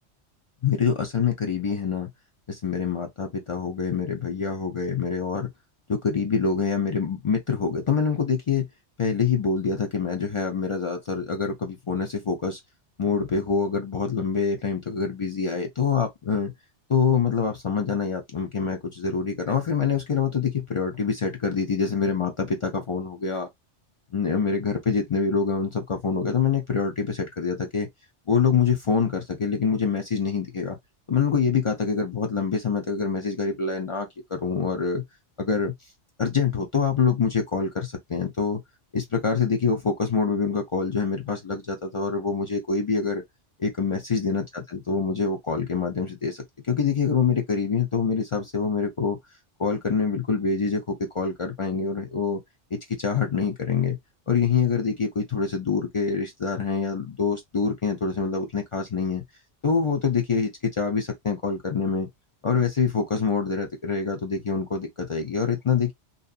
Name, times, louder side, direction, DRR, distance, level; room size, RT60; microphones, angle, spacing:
voice 1, 0.6-2.1 2.5-5.5 5.9-8.7 9.0-12.6 13.0-16.5 16.9-23.5 24.1-27.9 28.3-30.8 31.1-35.0 35.4-35.7 36.2-38.6 38.9-43.2 43.6-49.2 49.6-52.4 52.7-54.0 54.3-59.2 59.6-62.1 62.4-65.9, left 5 dB, 50° left, 0.3 m, -25 dB
2.7 x 2.4 x 2.3 m
omnidirectional pair, 1.2 m